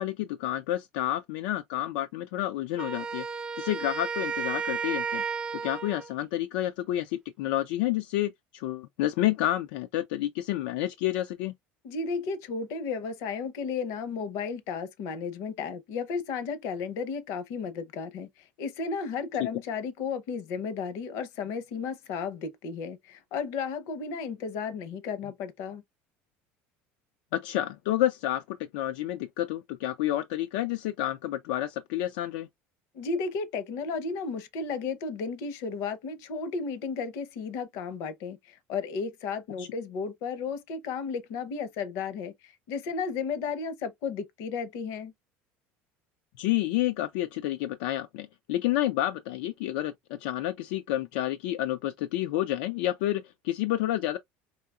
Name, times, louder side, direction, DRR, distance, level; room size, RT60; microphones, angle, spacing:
voice 1, 0.0-3.2 3.6-5.2 5.5-11.5 27.3-32.5 39.6-39.7 46.4-54.2, left 14 dB, 90° left, 0.4 m, -29 dB
Wind instrument woodwind instrument, 2.8-6.1, right 5 dB, 20° right, 0.3 m, -33 dB
voice 2, 11.8-25.8 32.9-45.1, left 5 dB, 65° left, 0.8 m, -34 dB
4.8 x 2.8 x 2.4 m
cardioid pair, 135°, 5 cm